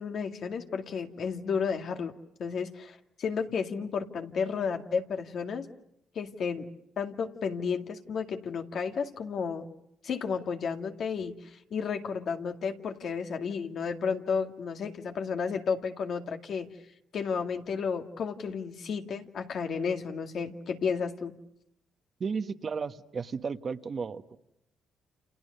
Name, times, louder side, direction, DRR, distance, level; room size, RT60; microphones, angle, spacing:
voice 1, 0.0-2.1 2.4-5.7 6.1-6.7 7.0-9.7 10.0-16.7 17.1-21.4, left 6 dB, 60° left, 6 dB, 2.1 m, -32 dB
voice 2, 22.2-24.4, right 5 dB, 45° right, 10 dB, 1.2 m, -34 dB
29.5 x 28.5 x 6.6 m, 0.77 s
cardioid pair, 90°, 0 cm